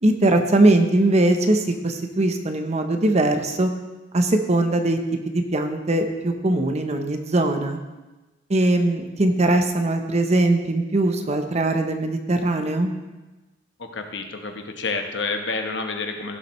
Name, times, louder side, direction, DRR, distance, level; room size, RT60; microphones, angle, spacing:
voice 1, 0.0-3.7 4.1-5.0 5.3-7.8 8.5-12.9, right 2 dB, 35° right, 6 dB, 0.9 m, -21 dB
voice 2, 13.8-16.4, left 3 dB, 70° left, 4 dB, 1.1 m, -29 dB
16.0 x 7.6 x 3.2 m, 1.1 s
head